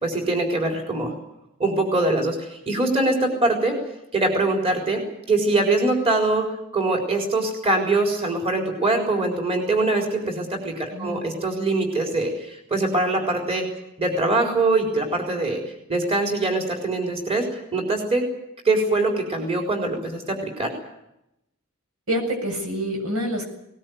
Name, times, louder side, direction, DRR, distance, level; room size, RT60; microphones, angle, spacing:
voice 1, 0.0-1.1 1.6-3.8 4.1-5.0 5.3-6.5 6.7-13.6 14.0-15.6 15.9-17.5 17.7-18.2 18.6-20.7, right 2 dB, 25° right, 2 dB, 4.1 m, -23 dB
voice 2, 10.9-11.3 22.1-23.4, equal, 80° right, 4 dB, 7.6 m, -27 dB
20.5 x 19.5 x 9.4 m, 0.84 s
head